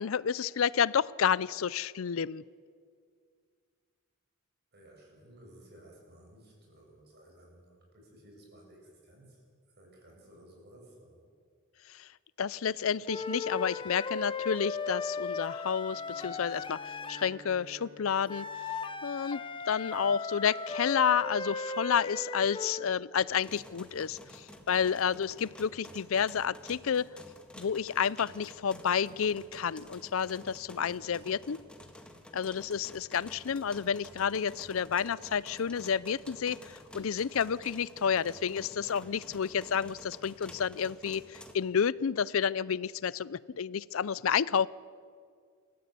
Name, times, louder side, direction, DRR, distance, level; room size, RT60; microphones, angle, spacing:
voice 1, 0.0-2.4 11.9-12.1 12.4-18.5 19.0-19.4 19.7-27.1 27.6-31.6 32.3-44.7, left 7 dB, 70° left, 21 dB, 0.5 m, -30 dB
voice 2, 4.7-9.4 9.7-11.3, right 1 dB, 50° right, 0 dB, 7.5 m, -56 dB
sound 1, 13.1-17.4 18.3-22.9, left 4 dB, 25° left, 1.0 m, -37 dB
Bowed string instrument, 15.7-20.0, right 1 dB, 90° right, 3.1 m, -55 dB
sound 2, 23.3-41.6, left 1 dB, 5° left, 1.7 m, -51 dB
28.0 x 14.5 x 8.3 m, 2.1 s
head